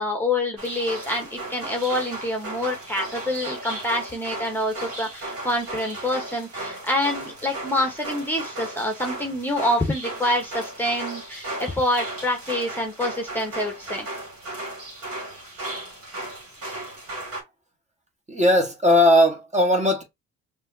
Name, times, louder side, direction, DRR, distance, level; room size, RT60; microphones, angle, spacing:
voice 1, 0.0-14.1, left 1 dB, 5° left, 1.1 m, -26 dB
sound 1, 0.6-17.4, right 2 dB, 50° right, 2.3 m, -35 dB
voice 2, 18.3-20.0, left 1 dB, 25° right, 1.6 m, -18 dB
5.4 x 3.0 x 2.7 m
cardioid pair, 90°, 30 cm